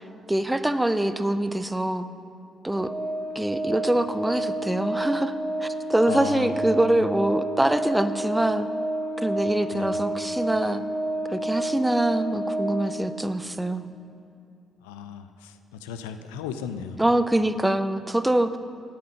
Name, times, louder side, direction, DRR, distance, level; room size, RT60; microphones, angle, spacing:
voice 1, 0.0-2.1 2.6-2.9 3.3-5.3 5.6-8.7 9.2-10.8 11.3-13.9 17.0-18.6, right 1 dB, 10° right, 11 dB, 0.5 m, -24 dB
Organ, 2.7-13.4, right 1 dB, 35° right, 1.4 m, -30 dB
voice 2, 6.1-6.5 6.9-7.0 9.7-10.0 14.8-15.5 15.8-17.0, left 7 dB, 70° left, 9 dB, 0.3 m, -35 dB
8.3 x 6.0 x 6.4 m, 2.6 s
figure-of-eight pair, 40°, 0 cm